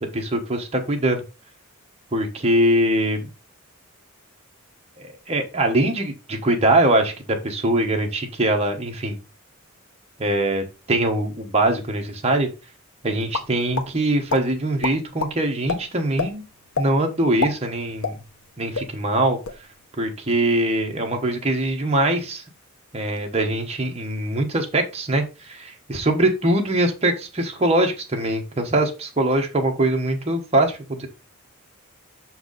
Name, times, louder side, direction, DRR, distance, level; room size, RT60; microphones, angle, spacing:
voice 1, 0.1-1.2 2.1-3.2 5.0-9.2 10.2-12.5 13.0-16.4 16.8-18.2 18.6-19.4 20.0-22.4 22.9-31.1, right 1 dB, 30° right, 2 dB, 1.2 m, -22 dB
sound 1, 13.3-13.9 14.3-14.4 14.8-15.3 15.7-15.8 16.2-16.3 16.7-16.9 17.3-18.5 18.7-18.9 19.3-19.6, left 4 dB, 85° left, 0.9 m, -26 dB
6.4 x 4.6 x 4.0 m, 0.30 s
head